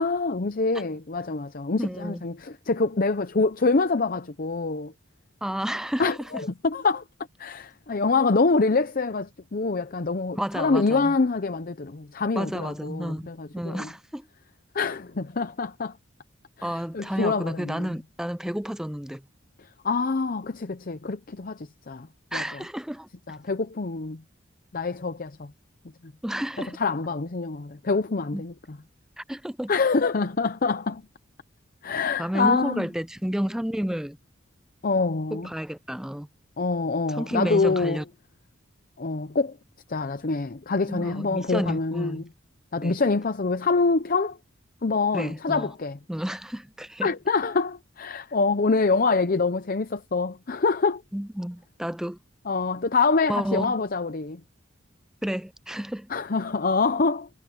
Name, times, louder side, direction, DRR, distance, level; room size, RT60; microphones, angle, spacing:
voice 1, 0.0-4.9 6.0-7.0 7.4-13.9 14.7-15.9 16.6-17.9 19.8-22.1 22.3-22.4 23.3-24.2 24.7-25.5 26.6-28.8 29.7-31.0 31.8-32.9 34.8-35.5 36.6-38.0 39.0-39.6 39.9-42.3 42.7-44.4 44.8-46.0 47.0-51.0 52.5-54.4 56.1-57.3, left 4 dB, 45° left, 0.7 m, -25 dB
voice 2, 1.8-2.2 5.4-6.4 10.3-11.2 12.4-14.3 16.6-19.2 22.3-23.1 26.2-26.8 28.3-28.4 29.2-29.7 32.2-34.2 35.3-36.3 37.1-38.0 40.9-42.2 42.8-43.0 45.1-45.7 46.1-47.1 51.1-52.2 53.3-53.8 55.2-56.1, equal, 5° right, 0.4 m, -31 dB
head